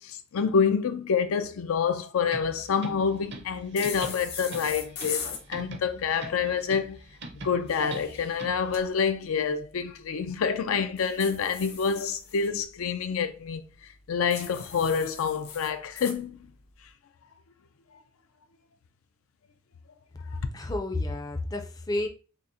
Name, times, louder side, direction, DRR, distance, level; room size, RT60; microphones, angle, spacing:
voice 1, 0.0-7.0 7.4-13.6 14.1-16.5, left 6 dB, 80° left, 0.4 m, -27 dB
sound 1, 2.2-8.8, right 2 dB, 55° right, 0.7 m, -43 dB
sound 2, 3.8-5.4 7.5-8.8 11.0-12.5 14.3-16.2, left 6 dB, 50° left, 0.8 m, -39 dB
voice 2, 20.5-22.1, left 2 dB, 20° left, 0.4 m, -30 dB
6.1 x 2.1 x 2.6 m
head